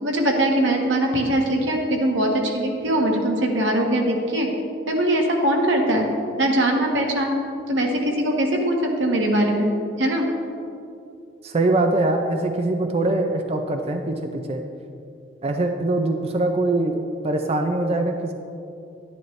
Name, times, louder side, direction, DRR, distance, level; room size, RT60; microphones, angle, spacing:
voice 1, 0.0-4.5 4.9-6.1 6.4-7.3 7.7-9.7 10.0-10.3, right 1 dB, 90° right, 1 dB, 1.4 m, -21 dB
voice 2, 11.4-14.6 15.4-18.3, right 2 dB, 35° right, 5 dB, 0.5 m, -23 dB
10.5 x 10.5 x 3.2 m, 2.6 s
head